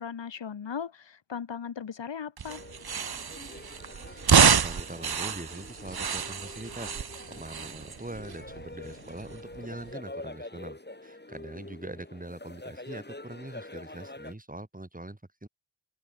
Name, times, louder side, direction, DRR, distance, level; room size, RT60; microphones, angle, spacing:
voice 1, 0.0-2.6, left 7 dB, 85° left, 2.4 m, -37 dB
sound 1, 2.4-9.9, right 7 dB, 60° right, 1.3 m, -28 dB
sound 2, 2.5-14.3, left 2 dB, 25° left, 6.7 m, -46 dB
voice 2, 3.9-7.0 7.3-15.5, right 1 dB, 20° right, 6.4 m, -42 dB
open air
cardioid pair, 50°, 43 cm